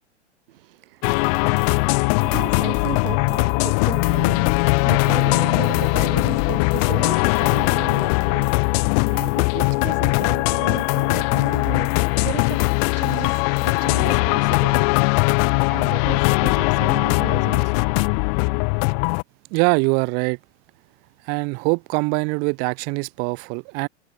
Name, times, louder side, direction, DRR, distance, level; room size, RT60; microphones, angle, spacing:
voice 1, 0.5-12.7 12.9-14.8 15.7-17.9 18.5-18.6, right 16 dB, 50° right, 5.0 m, -35 dB
sound 1, 1.0-19.2, left 37 dB, 35° left, 0.7 m, -20 dB
voice 2, 19.5-20.4 21.2-23.9, right 33 dB, 30° right, 0.6 m, -23 dB
figure-of-eight pair, 100°, 35 cm